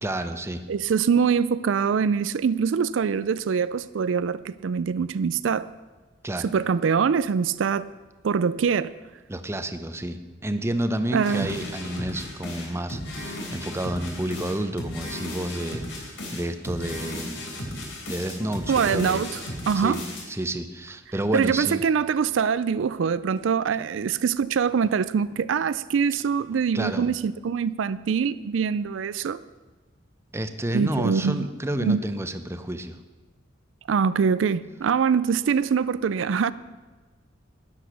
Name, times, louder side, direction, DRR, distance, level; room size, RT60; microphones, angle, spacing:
voice 1, 0.0-0.6 6.2-6.5 9.3-19.2 19.7-20.0 20.3-21.8 26.7-27.1 30.3-33.0, right 1 dB, 15° right, 0.7 m, -30 dB
voice 2, 0.7-5.7 6.4-7.9 8.2-8.9 11.1-11.5 18.7-19.4 19.7-20.0 21.3-29.4 30.7-31.5 31.8-32.0 33.9-36.5, right 6 dB, 85° right, 0.4 m, -24 dB
sound 1, 11.2-20.2, left 1 dB, 85° left, 3.5 m, -35 dB
12.5 x 10.0 x 6.2 m
head